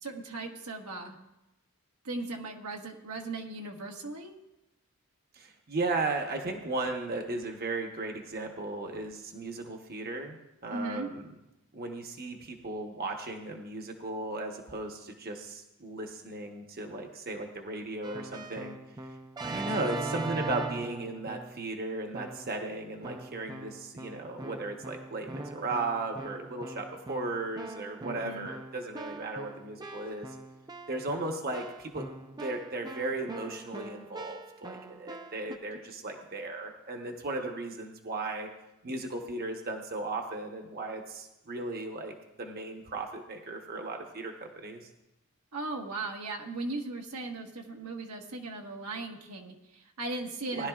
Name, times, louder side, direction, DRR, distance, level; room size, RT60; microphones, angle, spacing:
voice 1, 0.0-1.2 2.0-4.3 10.7-11.1 28.0-28.5 45.5-50.7, right 2 dB, 90° right, 1 dB, 1.4 m, -38 dB
voice 2, 5.3-10.4 10.6-11.3 11.7-18.7 19.0-19.1 19.4-30.3 30.9-32.1 32.4-38.5 38.8-44.9 50.5-50.7, right 2 dB, 45° right, 3 dB, 1.0 m, -36 dB
Keyboard (musical), 18.0-21.7 22.1-22.6 23.0-35.6, right 2 dB, 20° right, 0.5 m, -41 dB
19.0 x 11.0 x 2.4 m, 0.92 s
head